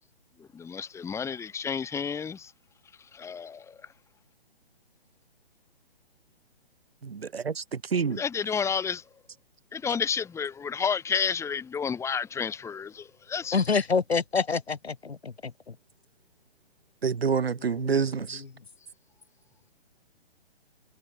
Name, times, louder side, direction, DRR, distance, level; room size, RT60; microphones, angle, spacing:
voice 1, 0.5-2.5 3.1-3.8 8.2-9.0 9.7-13.6, left 6 dB, 10° left, 4.5 m, -31 dB
voice 2, 7.0-8.2 17.0-18.4, right 6 dB, 70° right, 5.3 m, -28 dB
voice 3, 13.5-15.5, left 5 dB, 75° left, 3.0 m, -26 dB
figure-of-eight pair, 140°, 32 cm